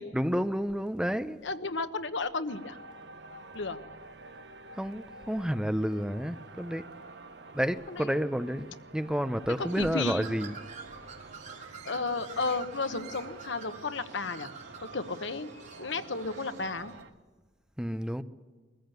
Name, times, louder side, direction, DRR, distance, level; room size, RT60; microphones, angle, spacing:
voice 1, 0.1-1.4 4.8-6.9 7.5-10.6 17.8-18.2, equal, 5° right, 0.7 m, -30 dB
voice 2, 1.4-2.8 3.5-3.8 7.9-8.3 9.6-10.3 11.8-14.5 14.9-15.5 15.8-16.9, left 3 dB, 85° left, 1.2 m, -33 dB
sound 1, 2.5-17.1, right 3 dB, 65° right, 1.0 m, -49 dB
Bird, 9.6-17.0, right 5 dB, 40° right, 2.8 m, -48 dB
22.0 x 14.5 x 9.2 m
head